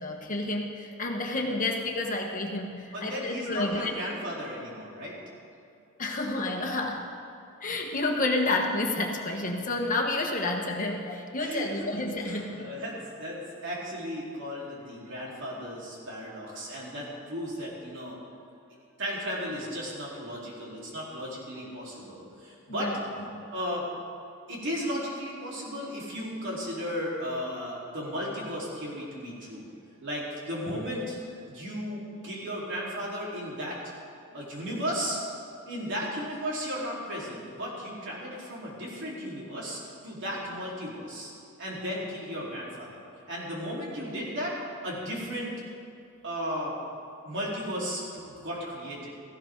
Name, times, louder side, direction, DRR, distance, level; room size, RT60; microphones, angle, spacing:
voice 1, 0.0-3.9 6.0-7.0 7.6-12.7 22.7-23.0 23.3-23.5 30.7-30.8, left 2 dB, 40° left, 1 dB, 1.4 m, -30 dB
voice 2, 2.9-5.2 9.6-9.7 11.4-18.2 19.0-22.9 23.5-23.9 24.5-29.7 30.0-31.2 31.5-33.8 34.3-35.2 35.7-41.3 41.6-44.6 44.8-45.5 46.2-46.7 47.2-49.1, equal, 60° right, -5 dB, 4.2 m, -35 dB
17.5 x 15.0 x 4.0 m, 2.6 s
head